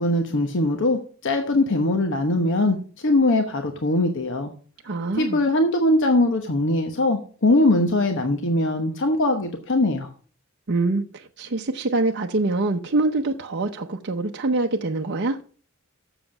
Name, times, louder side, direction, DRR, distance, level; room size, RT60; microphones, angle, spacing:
voice 1, 0.0-2.8 3.0-4.5 5.1-10.1, left 2 dB, 60° left, 1.0 m, -21 dB
voice 2, 4.8-5.4 10.7-15.4, right 2 dB, 55° right, 0.7 m, -24 dB
7.5 x 7.0 x 5.8 m
head